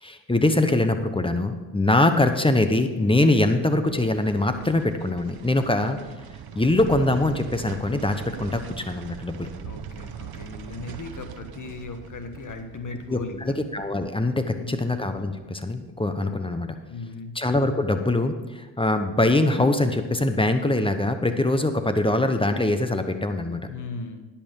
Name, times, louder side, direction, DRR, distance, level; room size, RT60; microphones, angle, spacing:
voice 1, 0.0-6.0 6.5-9.5 13.1-16.7 17.3-23.6, left 2 dB, 10° left, 8 dB, 1.0 m, -23 dB
sound 1, 3.6-16.3 16.6-16.7, right 8 dB, 55° right, 0.9 m, -41 dB
voice 2, 9.6-13.6 14.5-14.9 16.9-17.3 23.6-24.3, left 4 dB, 45° left, 7 dB, 1.4 m, -37 dB
10.0 x 5.8 x 6.5 m, 1.2 s
supercardioid pair, 55°, 43 cm